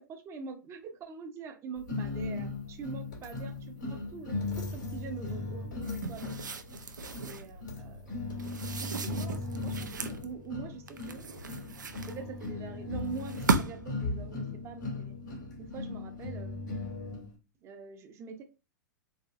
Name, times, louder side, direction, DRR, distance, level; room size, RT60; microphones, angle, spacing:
voice 1, 0.0-6.4 7.2-8.2 8.8-11.2 12.1-15.2 15.6-16.7 17.6-18.4, right 5 dB, 25° right, 5 dB, 0.7 m, -44 dB
sound 1, 1.9-17.3, left 3 dB, 85° left, 2.1 m, -38 dB
sound 2, 5.8-7.5 8.4-10.2 10.9-12.5 13.1-14.0, right 5 dB, 80° right, 0.5 m, -35 dB
4.1 x 3.0 x 2.5 m, 0.29 s
figure-of-eight pair, 105°, 10 cm